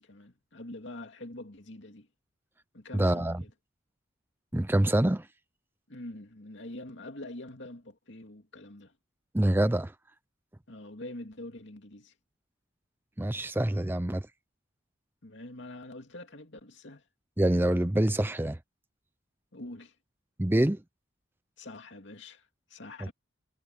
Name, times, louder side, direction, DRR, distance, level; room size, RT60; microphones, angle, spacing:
voice 1, 0.0-2.1 2.7-3.5 5.9-8.9 10.7-12.1 15.2-17.0 19.5-19.9 21.6-23.1, left 1 dB, 60° left, 2.6 m, -45 dB
voice 2, 2.9-3.4 4.5-5.3 9.3-9.9 13.2-14.3 17.4-18.6 20.4-20.8 23.0-23.1, right 1 dB, 10° right, 0.5 m, -26 dB
head